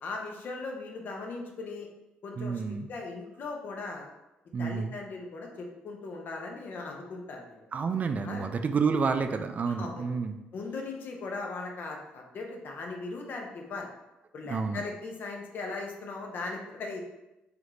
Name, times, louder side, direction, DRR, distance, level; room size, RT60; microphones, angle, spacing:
voice 1, 0.0-1.9 2.2-4.1 4.6-7.7 8.2-8.5 9.8-10.0 10.5-13.9 14.3-17.0, left 3 dB, 55° left, 1 dB, 0.8 m, -38 dB
voice 2, 2.4-2.9 4.5-4.9 7.7-10.4 14.4-14.8, right 5 dB, 40° right, 7 dB, 0.3 m, -29 dB
3.4 x 3.0 x 3.8 m, 0.98 s
cardioid pair, 85°, 4 cm